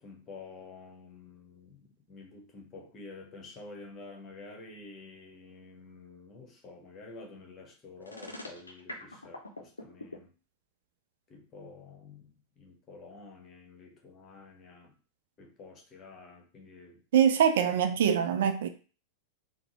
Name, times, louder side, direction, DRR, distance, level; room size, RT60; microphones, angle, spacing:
voice 1, 0.0-10.3 11.3-14.9 15.4-17.0, left 3 dB, 30° left, 1.0 m, -49 dB
sound 1, 8.0-10.2, left 2 dB, 80° left, 0.6 m, -42 dB
voice 2, 17.1-18.7, right 8 dB, 60° right, 0.3 m, -24 dB
3.8 x 2.1 x 3.0 m
figure-of-eight pair, 90°, 0 cm